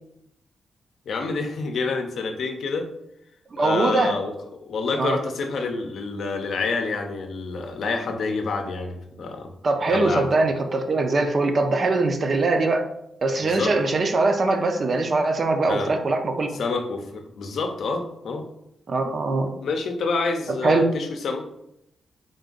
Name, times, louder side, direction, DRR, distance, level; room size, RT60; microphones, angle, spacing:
voice 1, 1.1-2.9 3.6-4.3 4.6-9.5 9.9-10.3 13.4-13.7 15.7-15.9 16.5-18.4 19.6-21.4, left 4 dB, 70° left, 4 dB, 0.6 m, -28 dB
voice 2, 3.5-4.1 5.0-5.2 9.6-12.9 13.2-16.6 18.9-19.5 20.6-20.9, right 3 dB, 45° right, 5 dB, 0.5 m, -22 dB
3.8 x 2.5 x 3.8 m, 0.80 s
cardioid pair, 110°, 0 cm